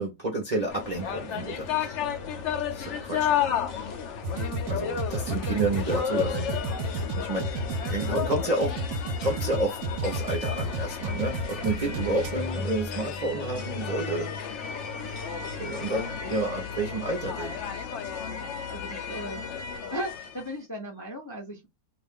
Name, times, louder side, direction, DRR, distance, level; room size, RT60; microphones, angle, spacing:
voice 1, 0.0-1.9 2.7-3.3 4.7-6.5 7.2-14.3 15.6-17.6, right 2 dB, 45° right, 0.5 m, -30 dB
sound 1, 0.7-20.5, left 7 dB, 65° left, 0.8 m, -33 dB
sound 2, 4.2-12.3, right 2 dB, 70° right, 1.0 m, -31 dB
voice 2, 15.3-15.6 18.3-19.4 19.9-21.7, equal, 25° left, 0.4 m, -38 dB
2.5 x 2.3 x 3.5 m
omnidirectional pair, 1.6 m